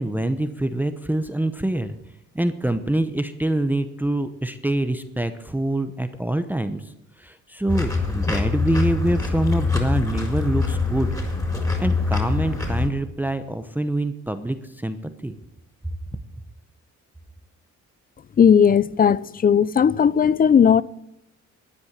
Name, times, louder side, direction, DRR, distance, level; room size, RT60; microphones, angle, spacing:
voice 1, 0.0-2.0 2.3-6.8 7.2-11.1 11.8-15.0 15.2-15.3, right 1 dB, 5° right, 0.8 m, -25 dB
sound 1, 7.7-12.9, left 4 dB, 10° left, 4.3 m, -24 dB
voice 2, 18.4-20.8, left 7 dB, 30° left, 0.5 m, -16 dB
13.0 x 9.7 x 7.3 m
cardioid pair, 90°, 30 cm